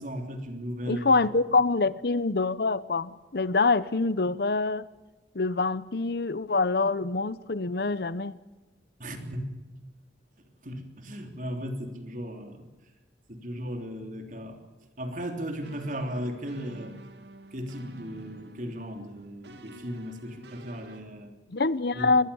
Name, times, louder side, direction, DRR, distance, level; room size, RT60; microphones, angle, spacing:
voice 1, 0.0-1.2 9.0-9.5 10.6-12.7 13.3-14.6 15.0-17.0 17.5-21.4 21.9-22.1, equal, 45° right, 5 dB, 3.4 m, -36 dB
voice 2, 0.9-4.9 5.3-8.4 21.5-22.3, left 3 dB, 60° left, 17 dB, 0.8 m, -25 dB
sound 1, 15.6-21.0, right 1 dB, 70° right, 2.5 m, -50 dB
23.0 x 20.5 x 7.1 m, 1.2 s
head